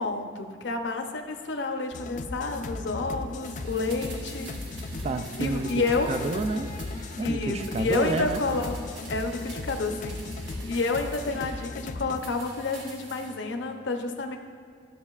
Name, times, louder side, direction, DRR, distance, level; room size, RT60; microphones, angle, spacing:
voice 1, 0.0-4.5 5.4-6.2 7.2-8.7 9.1-10.2 10.7-14.4, left 3 dB, 75° left, 4 dB, 0.7 m, -29 dB
sound 1, 1.9-12.2, left 3 dB, 40° left, 0.3 m, -37 dB
sound 2, 3.4-7.3 7.6-11.7 12.1-13.4 13.7-13.8, right 2 dB, 85° right, 1.4 m, -46 dB
voice 2, 4.9-6.7 7.2-8.5, right 3 dB, 35° right, 9 dB, 0.3 m, -30 dB
13.0 x 6.1 x 2.4 m, 2.1 s
head